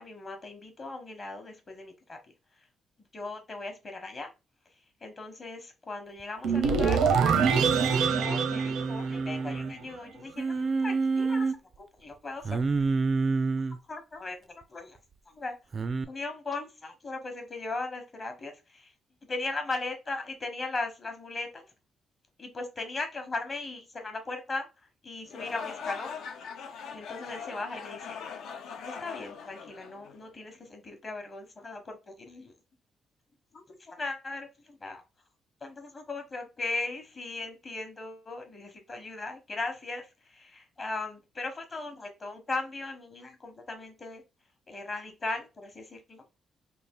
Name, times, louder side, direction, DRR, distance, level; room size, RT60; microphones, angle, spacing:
voice 1, 0.0-2.2 3.1-4.3 5.0-12.6 13.9-15.0 15.3-15.6 16.0-18.9 19.3-21.7 22.4-26.2 26.9-28.2 28.8-32.5 33.5-35.0 35.6-44.2 44.7-46.2, left 3 dB, 30° left, 5 dB, 0.9 m, -38 dB
sound 1, 6.4-9.7, right 6 dB, 85° right, 0.7 m, -25 dB
Singing, 7.3-9.7 10.4-11.5 12.4-13.8 15.7-16.0, right 4 dB, 35° right, 0.4 m, -28 dB
sound 2, 25.3-30.5, left 6 dB, 75° left, 0.6 m, -41 dB
3.3 x 2.4 x 3.5 m, 0.27 s
cardioid pair, 140°, 0 cm